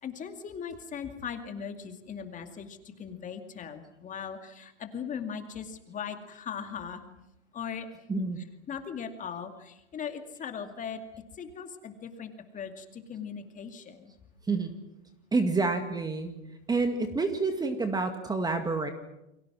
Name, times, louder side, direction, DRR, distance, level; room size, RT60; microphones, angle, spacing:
voice 1, 0.0-7.1 7.5-7.9 8.2-11.0 11.3-14.1, left 7 dB, 20° left, 6 dB, 2.4 m, -39 dB
voice 2, 8.1-8.4 14.5-14.7 15.3-16.3 16.7-18.9, right 3 dB, 10° right, 7 dB, 1.9 m, -28 dB
30.0 x 22.5 x 6.2 m, 0.88 s
hypercardioid pair, 125°, 36 cm